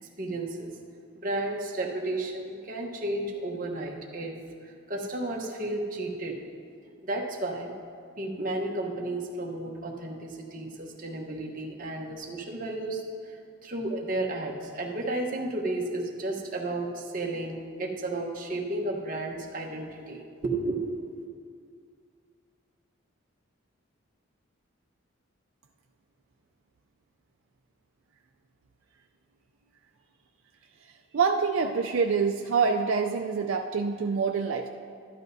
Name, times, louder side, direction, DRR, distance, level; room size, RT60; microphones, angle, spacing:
voice 1, 0.0-0.7 1.2-4.3 4.6-6.4 7.0-7.7 8.2-21.3, right 2 dB, 40° right, 0 dB, 1.0 m, -33 dB
voice 2, 31.1-34.7, right 5 dB, 75° right, 3 dB, 0.4 m, -26 dB
13.5 x 11.5 x 2.7 m, 2.2 s
head